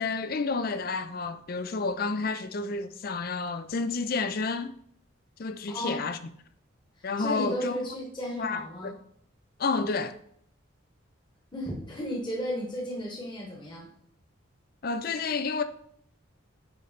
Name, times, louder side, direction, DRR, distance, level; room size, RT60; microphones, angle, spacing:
voice 1, 0.0-4.7 5.4-6.2 7.0-7.8 8.4-8.9 9.6-10.2 14.8-15.6, left 4 dB, 45° left, 0.4 m, -30 dB
voice 2, 5.7-6.0 7.0-8.9 11.5-13.9, equal, 20° left, 1.2 m, -34 dB
9.4 x 3.2 x 4.0 m
head